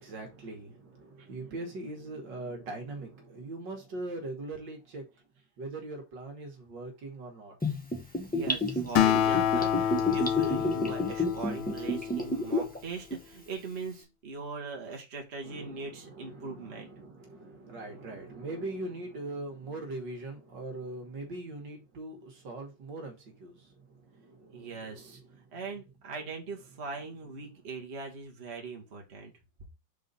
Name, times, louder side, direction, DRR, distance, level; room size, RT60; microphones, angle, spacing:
voice 1, 0.0-5.0 5.6-7.6 15.4-25.5, right 2 dB, 65° right, 2.1 m, -41 dB
Gurgling / Bathtub (filling or washing), 7.6-12.8 13.1-13.2, left 1 dB, 10° left, 0.6 m, -30 dB
voice 2, 8.4-16.9 24.5-25.2 25.5-29.3, right 4 dB, 35° right, 1.7 m, -40 dB
Acoustic guitar, 9.0-12.7, left 9 dB, 85° left, 1.4 m, -28 dB
5.0 x 3.9 x 5.4 m
omnidirectional pair, 2.1 m